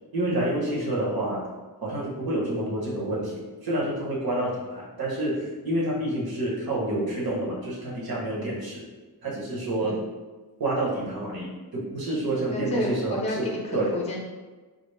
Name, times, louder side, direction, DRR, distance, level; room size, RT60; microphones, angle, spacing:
voice 1, 0.1-1.4 1.8-8.8 9.2-10.0 10.6-14.0, right 1 dB, 65° right, -5 dB, 1.1 m, -28 dB
voice 2, 12.5-14.2, left 1 dB, 15° left, -2 dB, 0.5 m, -31 dB
4.0 x 2.0 x 3.3 m, 1.3 s
wide cardioid pair, 145°, 39 cm